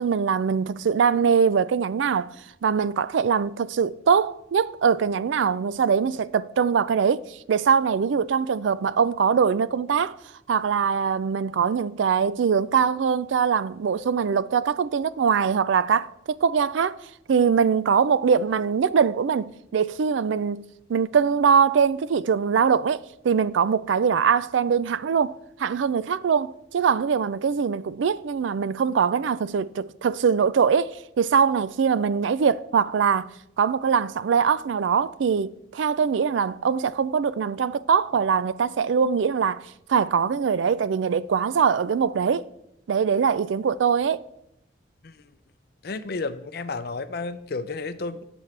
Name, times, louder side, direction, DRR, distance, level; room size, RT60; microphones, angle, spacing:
voice 1, 0.0-2.3 2.6-10.2 10.5-17.0 17.3-20.6 20.9-25.3 25.6-33.3 33.6-39.6 39.9-42.5 42.9-44.2, right 6 dB, 80° right, 0.4 m, -22 dB
voice 2, 45.8-48.2, left 3 dB, 55° left, 0.5 m, -31 dB
17.5 x 6.2 x 3.3 m
head